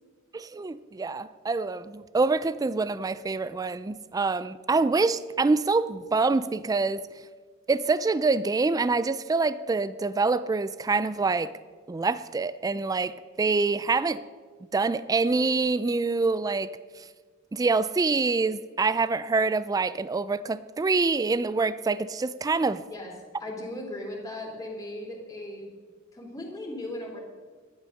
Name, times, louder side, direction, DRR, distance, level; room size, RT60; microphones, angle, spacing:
voice 1, 0.3-7.1 7.7-11.5 11.9-14.2 14.7-16.7 17.0-17.1 17.5-22.8, right 3 dB, 20° right, 15 dB, 0.3 m, -26 dB
voice 2, 23.4-25.7 26.1-27.2, left 1 dB, 15° left, -1 dB, 3.0 m, -37 dB
12.0 x 10.5 x 6.4 m, 1.5 s
head